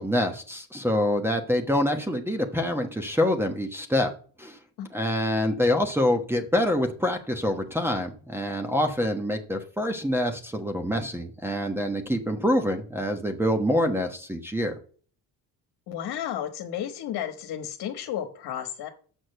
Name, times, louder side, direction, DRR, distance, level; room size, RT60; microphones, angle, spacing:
voice 1, 0.0-4.1 4.4-4.6 4.9-14.7, left 1 dB, 5° right, 1 dB, 1.1 m, -26 dB
voice 2, 15.9-18.9, left 10 dB, 65° left, 6 dB, 1.4 m, -33 dB
6.3 x 6.3 x 6.6 m, 0.43 s
cardioid pair, 95°, 39 cm